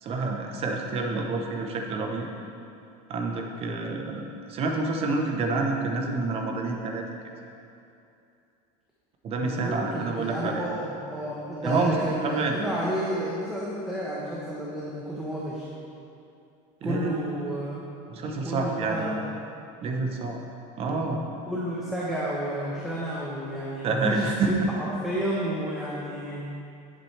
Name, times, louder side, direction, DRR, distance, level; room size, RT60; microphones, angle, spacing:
voice 1, 0.0-2.3 3.1-7.0 9.2-10.6 11.6-11.9 12.2-12.6 16.8-17.2 18.1-19.2 19.8-20.4 20.8-21.2 23.8-24.5, right 3 dB, 35° right, 2 dB, 1.0 m, -28 dB
voice 2, 9.4-15.6 16.8-17.8 18.4-19.1 21.5-24.5 25.0-26.4, right 1 dB, 5° right, -7 dB, 1.1 m, -31 dB
11.0 x 7.6 x 3.4 m, 2.7 s
supercardioid pair, 145°, 17 cm